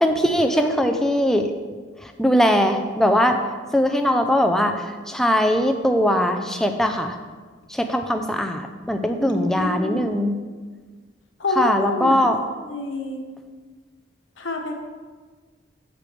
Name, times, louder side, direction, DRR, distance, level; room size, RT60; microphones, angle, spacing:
voice 1, 0.0-1.5 2.0-3.4 3.7-7.2 7.7-10.4 11.6-12.4, equal, ahead, 5 dB, 0.4 m, -20 dB
voice 2, 0.5-0.9 9.2-10.1 11.4-12.2 12.6-13.2 14.4-14.7, left 2 dB, 80° left, 2 dB, 1.1 m, -28 dB
8.1 x 7.7 x 3.3 m, 1.5 s
head